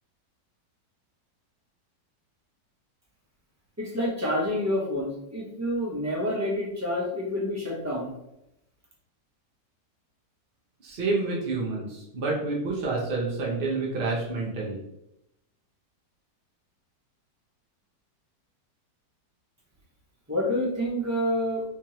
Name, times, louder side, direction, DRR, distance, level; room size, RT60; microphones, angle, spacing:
voice 1, 3.8-8.1 20.3-21.6, left 1 dB, 15° right, -5 dB, 0.6 m, -28 dB
voice 2, 10.8-14.8, right 3 dB, 60° right, -4 dB, 0.5 m, -28 dB
3.4 x 3.1 x 2.8 m, 0.85 s
omnidirectional pair, 1.8 m